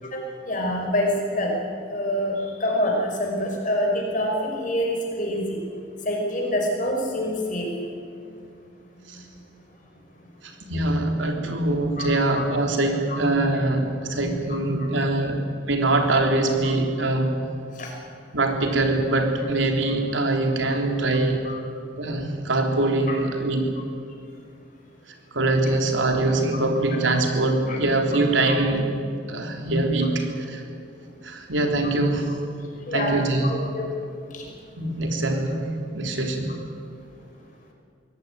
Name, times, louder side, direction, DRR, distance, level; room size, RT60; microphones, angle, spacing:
voice 1, 0.0-1.5 1.9-5.6 6.0-7.7 12.0-12.4 13.1-13.2 14.2-14.4 14.7-15.1 17.0-17.1 17.8-17.9 21.4-21.6 23.1-23.2 27.7-27.8 28.5-28.6 32.9-33.9 34.3-34.4, left 1 dB, 45° left, 0 dB, 5.6 m, -26 dB
voice 2, 10.4-17.4 18.3-21.4 22.0-23.7 25.3-28.9 29.3-30.6 31.2-32.4 32.9-33.6 34.8-35.7 35.9-36.6, right 2 dB, 85° right, 4 dB, 3.5 m, -23 dB
23.0 x 18.0 x 9.3 m, 2.3 s
head